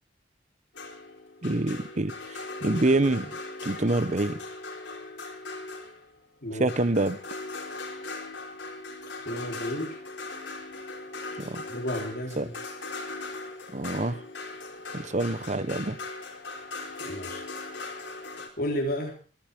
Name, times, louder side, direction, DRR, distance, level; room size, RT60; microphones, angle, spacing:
sound 1, 0.7-6.1 6.7-18.5, left 3 dB, 90° left, 3.9 m, -39 dB
voice 1, 1.4-3.3 3.6-4.4 6.6-7.2 11.4-11.6 12.4-12.5 13.7-14.2 14.9-16.0, right 2 dB, 40° right, 14 dB, 1.0 m, -26 dB
voice 2, 9.2-10.0 11.7-12.5 17.0-17.4 18.6-19.2, equal, 55° left, 1 dB, 4.4 m, -32 dB
27.0 x 9.6 x 3.6 m, 0.38 s
head